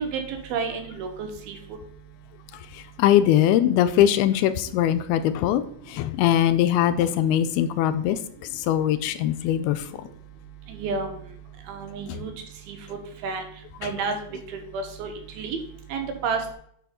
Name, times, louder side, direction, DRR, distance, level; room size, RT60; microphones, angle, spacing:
voice 1, 0.0-1.6 10.7-11.1 11.7-12.3 12.7-12.8 13.2-13.4 13.8-14.2 14.7-15.1 15.4-15.6 15.9-16.5, right 5 dB, 75° right, 5 dB, 2.8 m, -30 dB
voice 2, 3.0-5.6 5.9-8.2 8.7-9.8, left 11 dB, 80° left, 11 dB, 2.4 m, -21 dB
9.2 x 5.1 x 4.2 m, 0.64 s
omnidirectional pair, 4.6 m